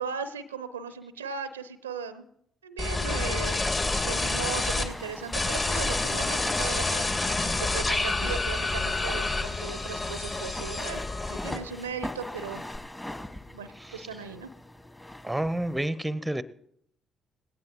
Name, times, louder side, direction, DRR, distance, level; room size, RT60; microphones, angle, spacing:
voice 1, 0.0-2.2 2.6-3.7 4.0-7.0 7.6-11.0 11.3-12.6 13.5-14.5, right 6 dB, 85° right, 13 dB, 0.6 m, -37 dB
sound 1, 2.8-4.8 5.3-11.9 12.2-12.8, left 2 dB, 35° left, 2.6 m, -28 dB
sound 2, 3.1-15.9, left 1 dB, 15° left, 1.7 m, -42 dB
voice 2, 13.7-14.1 15.2-16.4, right 1 dB, 5° right, 16 dB, 0.8 m, -30 dB
20.0 x 17.0 x 3.0 m, 0.74 s
figure-of-eight pair, 45°, 0 cm